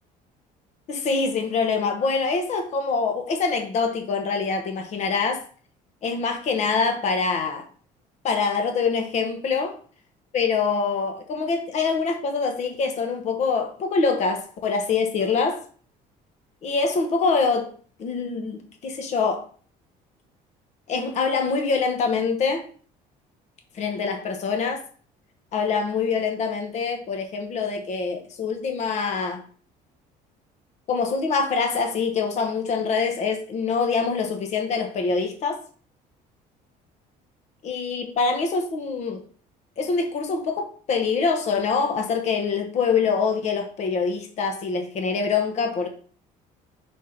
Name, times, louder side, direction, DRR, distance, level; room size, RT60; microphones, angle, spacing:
voice 1, 0.9-5.4 6.0-7.7 8.2-9.8 10.3-15.6 16.6-17.7 18.0-19.4 20.9-22.7 23.7-24.8 25.5-29.4 30.9-35.6 37.6-39.2 39.8-45.9, left 5 dB, 45° left, 1.1 m, -25 dB
5.5 x 4.4 x 5.0 m
cardioid pair, 145°, 16 cm